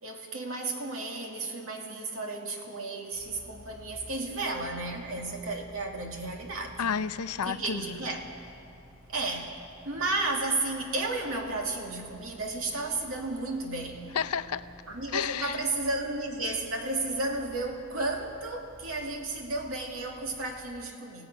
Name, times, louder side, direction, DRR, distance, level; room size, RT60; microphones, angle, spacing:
voice 1, 0.0-6.8 7.4-8.3 9.1-9.6 9.8-14.2 14.9-21.3, right 2 dB, 65° right, 2 dB, 2.4 m, -33 dB
sound 1, 3.1-20.7, equal, 85° right, 7.5 m, -53 dB
voice 2, 6.8-7.8 14.1-14.6 15.1-15.6, left 7 dB, 90° left, 13 dB, 0.6 m, -31 dB
28.0 x 16.5 x 6.1 m, 2.6 s
head